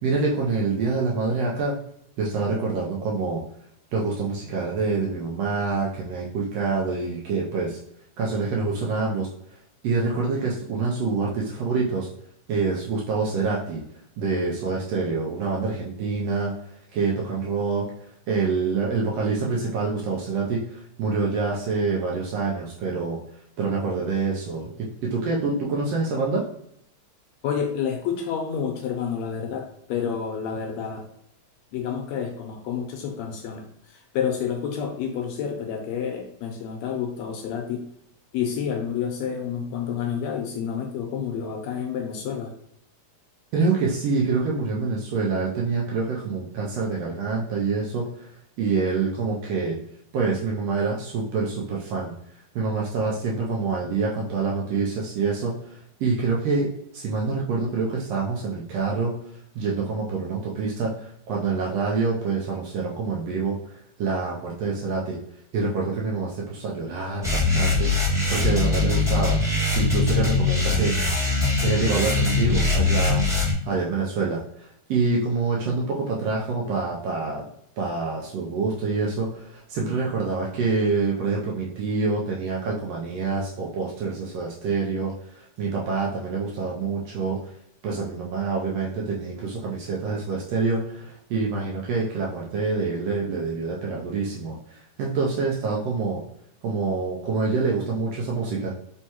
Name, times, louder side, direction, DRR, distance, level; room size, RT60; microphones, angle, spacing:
voice 1, 0.0-1.7 2.2-3.4 3.9-7.8 8.2-9.3 9.8-12.1 12.5-13.8 14.2-16.5 16.9-17.8 18.3-23.2 23.6-24.7 25.1-26.4 43.5-48.3 48.6-49.8 50.1-52.1 52.5-56.7 56.9-59.1 59.5-65.2 65.5-67.9 68.3-70.9 71.6-73.2 73.7-77.5 77.8-87.4 87.8-96.2 96.6-98.7, right 4 dB, 75° right, -3 dB, 1.5 m, -26 dB
voice 2, 27.4-31.1 31.7-37.8 38.3-42.5, left 7 dB, 80° left, 3 dB, 1.7 m, -29 dB
sound 1, 67.2-73.5, left 3 dB, 5° right, 0.4 m, -22 dB
4.5 x 3.3 x 2.8 m, 0.71 s
omnidirectional pair, 3.4 m